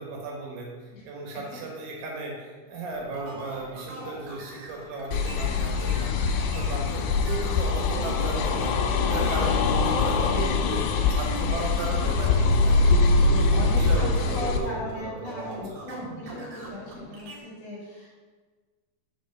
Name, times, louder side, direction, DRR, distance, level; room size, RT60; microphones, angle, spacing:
voice 1, 0.0-0.7 1.1-6.1 6.4-8.7 9.1-10.8 11.1-15.6, right 3 dB, 75° right, -1 dB, 3.7 m, -35 dB
sound 1, 2.9-17.4, right 1 dB, 50° right, 2.8 m, -39 dB
sound 2, 5.1-14.6, left 4 dB, 80° left, 2.8 m, -23 dB
voice 2, 13.5-18.1, left 1 dB, 60° left, -6 dB, 3.5 m, -38 dB
7.3 x 5.1 x 6.5 m, 1.4 s
omnidirectional pair, 5.8 m